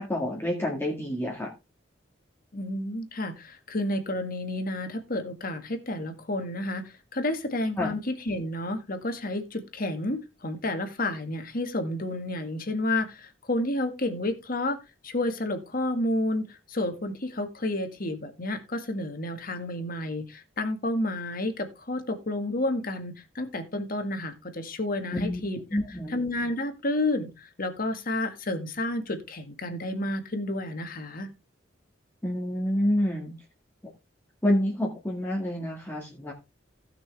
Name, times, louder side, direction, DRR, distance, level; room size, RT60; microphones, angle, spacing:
voice 1, 0.0-1.5 7.8-7.9 25.1-25.4 25.7-26.2 32.2-33.3 34.4-36.3, left 1 dB, 15° left, -3 dB, 2.1 m, -28 dB
voice 2, 2.5-6.8 7.1-14.8 15.0-25.6 26.1-31.3, left 1 dB, 50° left, 7 dB, 1.8 m, -30 dB
16.0 x 6.1 x 3.3 m, 0.25 s
head